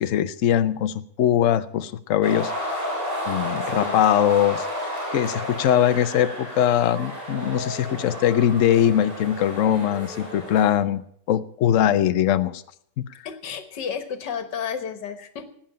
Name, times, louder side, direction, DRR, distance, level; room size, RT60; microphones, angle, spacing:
voice 1, 0.0-2.5 3.3-4.7 5.1-11.0 11.3-12.6 13.0-13.1, left 10 dB, 60° left, 13 dB, 0.9 m, -21 dB
sound 1, 2.2-10.7, left 1 dB, 30° right, 3.9 m, -32 dB
voice 2, 3.6-4.0 13.2-15.5, left 7 dB, 80° left, 10 dB, 1.9 m, -32 dB
13.0 x 9.0 x 8.8 m, 0.66 s
omnidirectional pair, 1.8 m